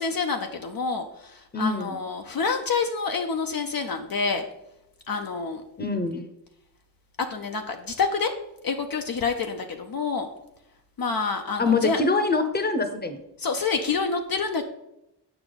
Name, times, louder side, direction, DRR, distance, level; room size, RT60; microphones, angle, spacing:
voice 1, 0.0-4.4 5.1-5.6 7.3-8.3 8.6-10.3 11.0-12.0 13.4-14.6, left 4 dB, 55° left, 5 dB, 0.6 m, -27 dB
voice 2, 1.5-2.0 5.8-6.2 11.6-13.2, left 3 dB, 25° left, 8 dB, 0.8 m, -24 dB
7.9 x 5.7 x 4.0 m, 0.87 s
wide cardioid pair, 115°, 42 cm